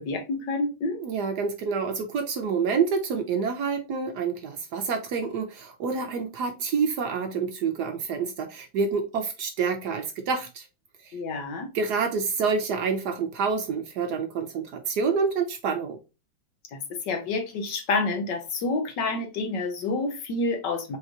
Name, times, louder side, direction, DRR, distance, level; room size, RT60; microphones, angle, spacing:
voice 1, 0.0-1.0 11.1-11.7 16.7-21.0, left 3 dB, 70° left, 1.5 m, -28 dB
voice 2, 1.0-10.7 11.0-11.1 11.7-16.0, right 5 dB, 70° right, 1.0 m, -27 dB
5.0 x 3.1 x 2.5 m
omnidirectional pair, 2.1 m